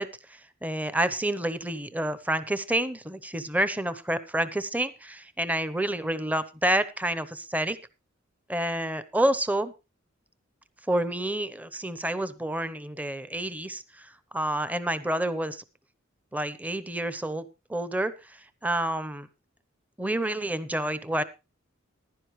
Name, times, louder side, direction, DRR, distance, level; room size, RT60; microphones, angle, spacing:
voice 1, 0.0-7.8 8.5-9.7 10.9-15.6 16.3-18.4 18.6-19.3 20.0-21.2, right 1 dB, 10° right, 14 dB, 0.9 m, -29 dB
15.0 x 11.0 x 3.1 m, 0.27 s
head